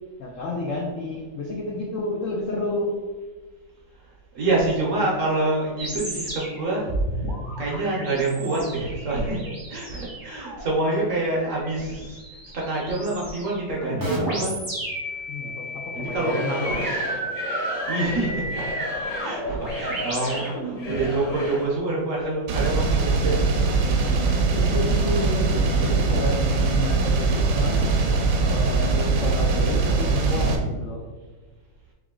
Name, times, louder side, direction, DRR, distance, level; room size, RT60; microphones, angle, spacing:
voice 1, 0.2-2.9 15.3-16.9 24.4-27.9 28.4-31.0, left 2 dB, 75° left, -1 dB, 0.7 m, -30 dB
voice 2, 4.0-7.3 7.6-12.2 12.5-14.6 15.9-17.0 17.9-18.7 19.2-23.5 23.8-24.3, right 2 dB, 55° right, -3 dB, 1.0 m, -27 dB
sound 1, 5.8-21.1, right 1 dB, 20° right, 0.5 m, -32 dB
Singing / Crowd, 16.1-21.8, left 1 dB, 55° left, 1.6 m, -34 dB
sound 2, 22.5-30.6, right 4 dB, 80° right, 1.3 m, -21 dB
3.6 x 3.0 x 3.7 m, 1.3 s
omnidirectional pair, 2.0 m